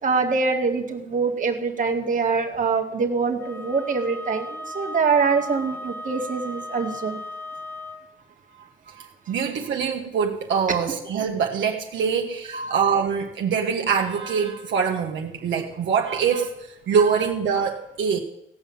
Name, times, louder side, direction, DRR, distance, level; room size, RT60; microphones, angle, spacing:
voice 1, 0.0-7.2 12.5-12.7, right 4 dB, 40° right, 3 dB, 2.0 m, -24 dB
Wind instrument woodwind instrument, 3.4-8.1, left 1 dB, 10° left, 1.5 m, -36 dB
voice 2, 8.9-18.2, right 6 dB, 70° right, 1 dB, 1.5 m, -24 dB
16.5 x 5.6 x 8.8 m, 0.83 s
cardioid pair, 90°, 20 cm